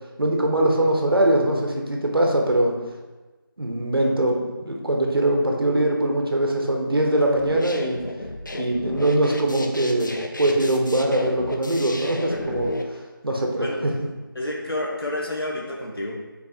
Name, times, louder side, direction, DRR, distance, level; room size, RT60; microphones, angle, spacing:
voice 1, 0.2-2.7 3.6-8.0 8.5-10.1 10.4-12.7 13.2-13.9, right 1 dB, 80° right, 0 dB, 1.3 m, -22 dB
sound 1, 7.4-12.8, left 1 dB, 60° left, 0.7 m, -33 dB
voice 2, 14.3-16.2, left 1 dB, 90° left, -2 dB, 1.3 m, -30 dB
7.3 x 4.5 x 2.9 m, 1.2 s
figure-of-eight pair, 180°, 12 cm